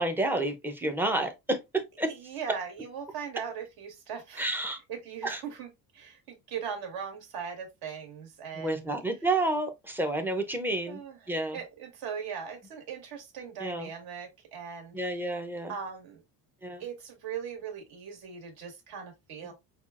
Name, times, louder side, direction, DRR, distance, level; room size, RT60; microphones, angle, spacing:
voice 1, 0.0-2.1 4.4-4.8 5.2-5.4 8.6-11.0 11.3-11.6 13.6-13.9 14.9-15.7 16.6-16.8 19.4-19.5, right 2 dB, 5° right, 0.4 m, -30 dB
voice 2, 2.1-8.9 10.9-15.0 15.7-16.2 16.8-19.5, right 7 dB, 70° right, 1.5 m, -40 dB
5.5 x 2.3 x 2.4 m
cardioid pair, 170°, 39 cm